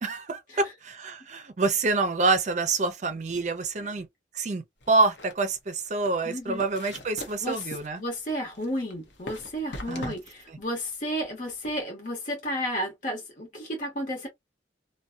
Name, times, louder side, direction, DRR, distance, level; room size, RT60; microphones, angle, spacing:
voice 1, 0.0-4.1 4.3-8.0 9.9-10.1 10.5-10.6, right 3 dB, 40° right, 0.5 m, -27 dB
sound 1, 4.8-11.8, left 1 dB, 80° left, 0.8 m, -43 dB
voice 2, 6.2-6.6 7.4-7.7 8.0-14.3, equal, 45° left, 1.0 m, -32 dB
2.6 x 2.2 x 2.3 m
head